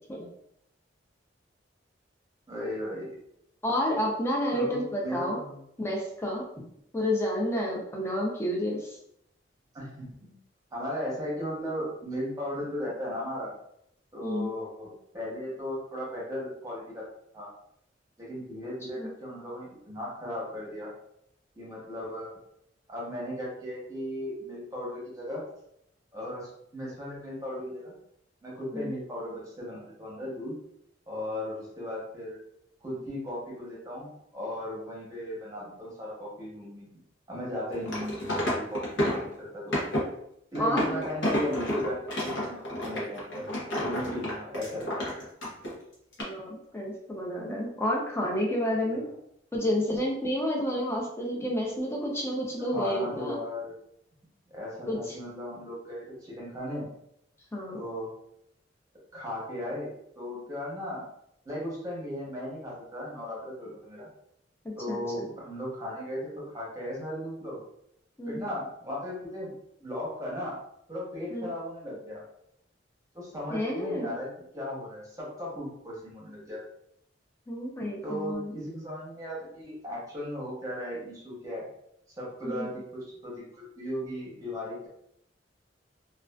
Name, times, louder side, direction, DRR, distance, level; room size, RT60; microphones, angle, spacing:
voice 1, 2.5-3.1 4.5-5.6 9.7-10.3 10.7-13.5 14.1-17.0 17.3-17.5 18.2-20.9 21.5-22.3 22.9-25.4 26.1-27.9 28.4-30.6 31.1-32.4 32.8-36.9 37.3-39.8 40.5-43.5 43.8-45.1 52.6-53.7 54.5-56.9 57.7-58.1 59.1-61.0 61.4-64.1 64.8-67.6 68.3-69.5 69.8-70.6 70.9-72.2 73.1-74.3 74.5-76.6 78.0-81.7 82.2-83.3 83.7-84.9, equal, 20° right, -5 dB, 0.9 m, -36 dB
voice 2, 3.6-5.4 5.8-6.4 6.9-9.0 14.2-14.5 19.0-19.1 28.7-28.9 40.6-41.0 46.2-49.0 49.5-53.4 54.9-55.1 57.5-57.8 64.6-65.0 68.2-68.5 71.3-71.5 73.5-74.1 77.5-78.5 82.4-82.7, equal, 15° left, -2 dB, 0.5 m, -30 dB
sound 1, 37.7-39.3 39.7-40.1 40.5-45.7 46.1-46.2, left 1 dB, 75° left, 0.7 m, -30 dB
2.3 x 2.3 x 2.2 m, 0.73 s
head